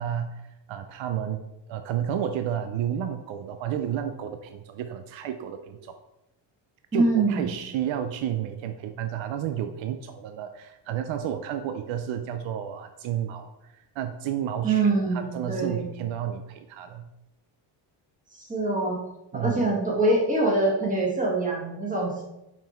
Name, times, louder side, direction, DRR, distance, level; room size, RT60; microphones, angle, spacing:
voice 1, 0.0-5.9 6.9-17.1 19.3-19.6, right 9 dB, 75° right, 8 dB, 0.6 m, -31 dB
voice 2, 6.9-7.5 14.6-15.9 18.3-19.0 19.3-22.2, right 2 dB, 15° right, -2 dB, 1.6 m, -24 dB
5.8 x 5.3 x 4.4 m, 0.91 s
cardioid pair, 160°, 46 cm